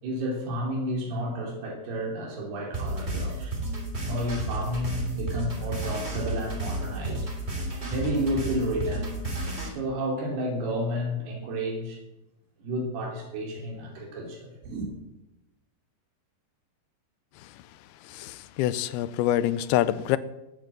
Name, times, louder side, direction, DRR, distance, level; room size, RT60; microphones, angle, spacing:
voice 1, 0.0-3.6 4.0-7.3 7.9-9.1 9.7-12.0 12.6-14.9, equal, 90° right, 5.0 m, -31 dB
sound 1, 2.7-9.7, right 1 dB, 20° right, 2.8 m, -32 dB
voice 2, 18.0-20.2, left 13 dB, 85° left, 2.7 m, -26 dB
17.0 x 9.3 x 7.5 m
omnidirectional pair, 4.5 m